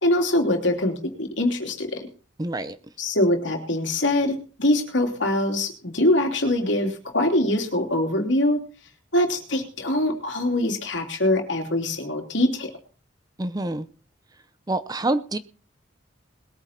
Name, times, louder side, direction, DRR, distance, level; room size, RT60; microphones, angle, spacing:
voice 1, 0.0-2.0 3.0-8.6 9.1-12.7, left 1 dB, 70° left, 4 dB, 2.9 m, -23 dB
voice 2, 2.4-2.8 13.4-13.9 14.7-15.4, right 2 dB, 20° right, 13 dB, 0.6 m, -26 dB
21.0 x 8.8 x 4.3 m, 0.38 s
head